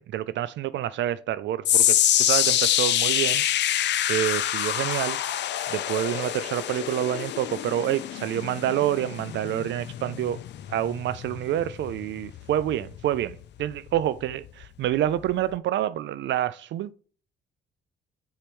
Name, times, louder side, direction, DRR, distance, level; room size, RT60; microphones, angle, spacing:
voice 1, 0.0-3.7 4.1-5.2 5.7-10.4 10.7-16.9, right 12 dB, 65° right, 0.4 m, -28 dB
sound 1, 1.6-14.0 14.3-14.6 15.3-15.4, left 11 dB, 60° left, 0.5 m, -26 dB
4.4 x 4.4 x 5.3 m
cardioid pair, 90°, 20 cm